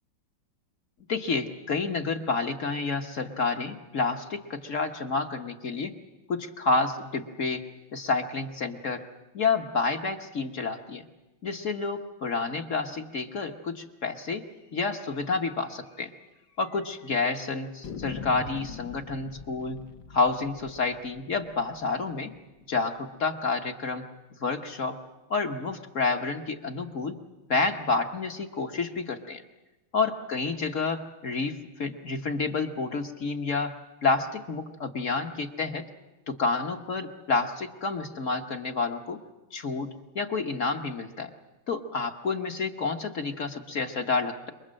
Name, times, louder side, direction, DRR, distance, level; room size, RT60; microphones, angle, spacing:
voice 1, 1.1-5.9 6.3-7.6 7.9-9.0 9.3-11.0 11.4-14.4 14.7-16.1 16.6-19.8 20.1-22.3 22.7-24.0 24.4-25.0 25.3-27.1 27.5-29.4 29.9-33.8 34.0-35.8 36.3-39.2 39.5-39.9 40.1-41.3 41.7-44.5, left 4 dB, 45° left, 5 dB, 1.3 m, -29 dB
sound 1, 15.0-15.2 15.5-15.6 15.9-16.0 16.6-17.1 17.8-22.6, left 5 dB, 60° left, 1.8 m, -44 dB
27.0 x 23.5 x 7.6 m, 1.0 s
omnidirectional pair, 2.2 m